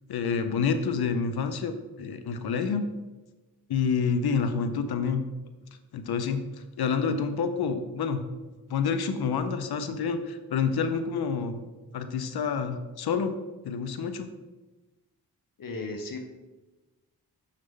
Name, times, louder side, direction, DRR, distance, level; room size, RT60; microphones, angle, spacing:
voice 1, 0.1-2.9 3.7-5.2 5.9-6.4 6.8-8.2 8.7-11.6 11.9-13.3 13.6-14.3, left 5 dB, 75° left, 9 dB, 0.7 m, -28 dB
voice 2, 15.6-16.2, left 2 dB, 60° left, 4 dB, 1.0 m, -35 dB
6.6 x 5.6 x 3.7 m, 1.1 s
cardioid pair, 55°, 38 cm